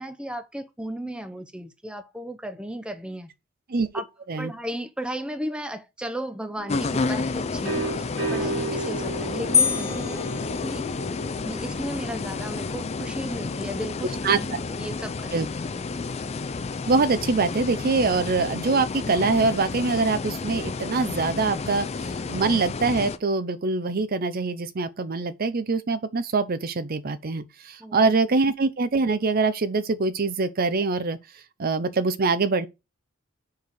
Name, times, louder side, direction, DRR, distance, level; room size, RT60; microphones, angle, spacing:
voice 1, 0.0-3.3 3.9-4.0 4.4-10.2 10.6-10.9 11.4-15.3 15.7-15.8 27.8-28.1, equal, 5° right, 0.6 m, -35 dB
sound 1, 6.6-12.3, right 3 dB, 80° right, 1.7 m, -34 dB
sound 2, 6.7-23.2, left 4 dB, 30° left, 0.4 m, -31 dB
sound 3, 9.5-11.3, left 7 dB, 15° left, 1.3 m, -26 dB
voice 2, 16.9-31.2 31.6-32.7, right 3 dB, 45° right, 0.6 m, -24 dB
4.7 x 4.7 x 5.1 m
head